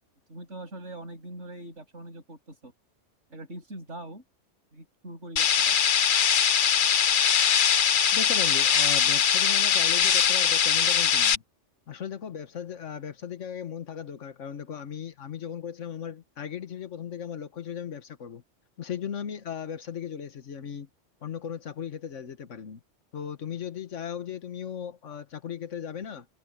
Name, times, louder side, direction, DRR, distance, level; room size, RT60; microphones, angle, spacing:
voice 1, 0.3-2.7 3.3-4.2 4.7-5.8, right 1 dB, 75° right, 7.6 m, -42 dB
sound 1, 5.4-11.4, left 8 dB, 50° left, 0.8 m, -22 dB
voice 2, 8.1-11.4 11.9-18.4 18.8-20.9 21.2-22.8 23.1-26.3, left 8 dB, 80° left, 1.6 m, -37 dB
omnidirectional pair, 1.2 m